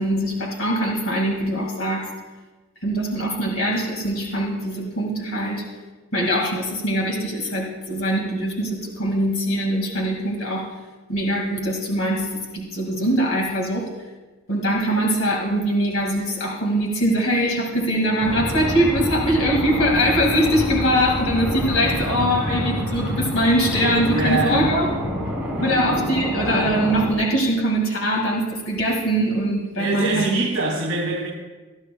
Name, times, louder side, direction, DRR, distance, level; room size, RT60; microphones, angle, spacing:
voice 1, 0.0-2.1 2.8-5.6 6.1-10.7 11.1-13.9 14.5-24.9 25.6-30.4, equal, 65° left, -1 dB, 2.1 m, -22 dB
sound 1, 18.2-27.1, equal, 5° right, 3.1 m, -27 dB
voice 2, 24.0-24.8 29.8-31.3, right 2 dB, 65° right, -2 dB, 2.8 m, -24 dB
20.0 x 12.0 x 2.3 m, 1.2 s
head